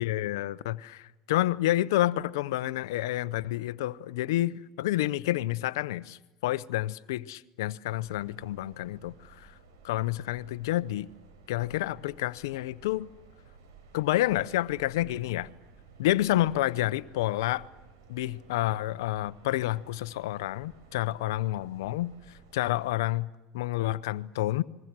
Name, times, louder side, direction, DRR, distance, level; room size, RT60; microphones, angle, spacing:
voice 1, 0.0-9.5 9.8-11.1 11.5-13.1 13.9-15.5 16.0-17.7 18.1-22.1 22.5-24.6, left 15 dB, 80° left, 0.7 m, -29 dB
sound 1, 7.9-22.9, right 4 dB, 85° right, 5.5 m, -55 dB
29.5 x 22.0 x 6.1 m
hypercardioid pair, 90°, 2 cm